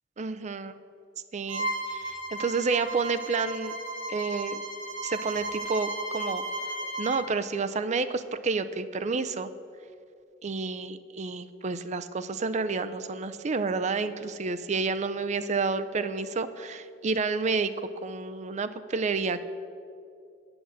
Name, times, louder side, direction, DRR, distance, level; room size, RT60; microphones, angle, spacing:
voice 1, 0.2-0.7 1.3-3.8 4.1-4.6 5.0-6.4 7.0-9.5 10.4-19.4, right 4 dB, 40° right, 11 dB, 0.5 m, -30 dB
Bowed string instrument, 1.5-7.3, right 1 dB, 80° right, 1.7 m, -35 dB
8.7 x 6.4 x 8.0 m, 2.4 s
head